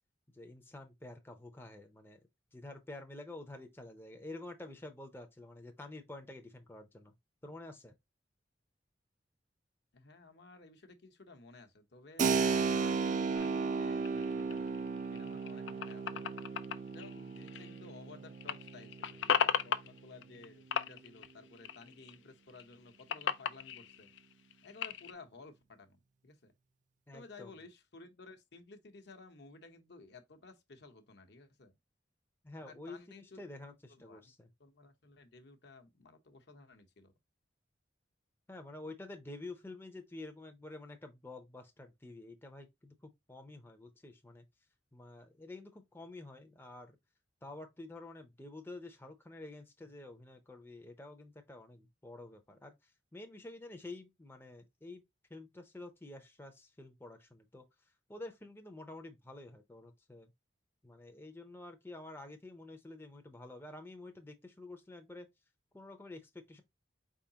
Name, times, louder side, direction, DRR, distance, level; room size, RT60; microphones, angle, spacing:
voice 1, 0.3-2.2 2.5-7.1 7.4-7.9 27.1-27.6 32.4-34.5 38.5-44.5 44.9-47.0 47.4-55.0 55.3-57.6 58.1-60.3 60.8-65.3 65.7-66.6, left 2 dB, 10° left, 0.6 m, -49 dB
voice 2, 9.9-14.7 15.1-16.3 16.9-24.1 24.6-26.5 27.1-31.7 32.6-33.4 33.9-34.3 34.6-37.1, left 3 dB, 65° left, 0.9 m, -55 dB
Keyboard (musical), 12.2-20.6, right 5 dB, 45° right, 0.4 m, -35 dB
sound 1, 13.3-18.1 18.3-20.5 20.7-22.2 22.5-25.1, left 7 dB, 85° left, 0.5 m, -37 dB
4.7 x 3.6 x 2.7 m
head